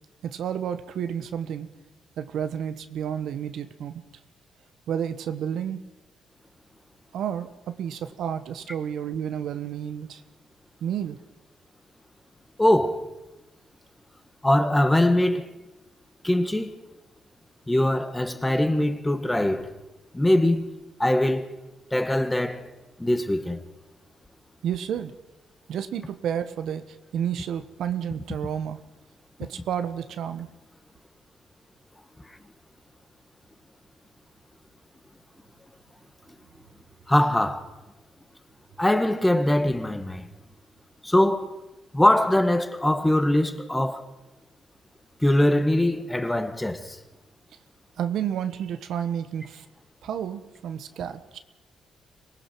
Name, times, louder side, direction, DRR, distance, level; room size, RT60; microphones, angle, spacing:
voice 1, 0.2-1.7 2.2-4.0 4.9-5.8 7.1-10.2 10.8-11.2 24.6-25.1 25.7-28.8 29.4-30.5 48.0-49.6 50.0-51.4, right 9 dB, 75° right, 1.2 m, -31 dB
voice 2, 12.6-13.1 14.4-15.5 16.2-16.7 17.7-19.7 20.1-20.7 21.0-21.5 21.9-22.7 23.0-23.6 37.1-37.7 38.8-40.3 41.0-41.6 41.9-44.0 45.2-47.0, left 1 dB, 10° left, 1.7 m, -22 dB
25.0 x 19.0 x 6.2 m
cardioid pair, 90°, 0 cm